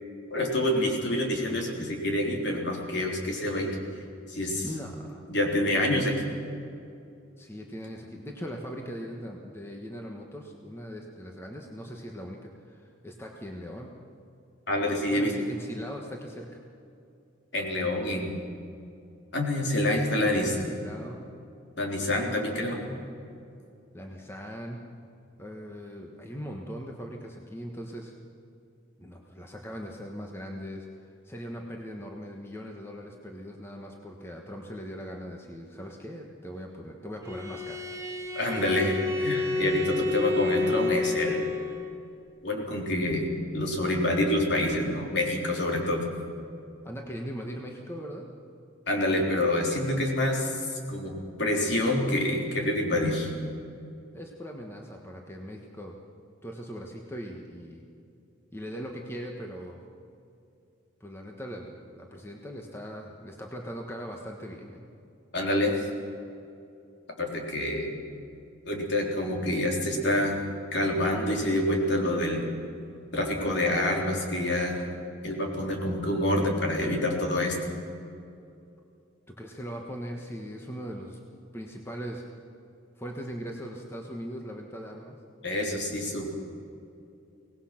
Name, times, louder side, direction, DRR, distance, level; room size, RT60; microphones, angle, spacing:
voice 1, 0.3-3.7 4.3-4.7 5.3-6.1 14.7-15.3 17.5-18.3 19.3-20.7 21.8-22.9 38.4-41.5 42.4-46.1 48.9-53.3 65.3-65.9 67.2-68.0 68.6-70.4 70.7-72.4 73.1-74.8 75.2-77.8 85.4-86.4, left 1 dB, 55° left, 0 dB, 3.7 m, -27 dB
voice 2, 4.6-5.2 7.4-13.9 15.1-16.6 20.2-21.3 23.9-24.8 25.4-28.1 29.0-37.9 46.8-48.3 54.1-55.9 56.4-57.8 58.5-59.8 61.0-64.8 79.4-81.2 81.5-82.2 83.0-85.2, equal, 10° left, 1 dB, 1.4 m, -40 dB
Bowed string instrument, 37.2-42.0, left 3 dB, 15° right, 1.5 m, -29 dB
23.5 x 18.5 x 5.9 m, 2.6 s
head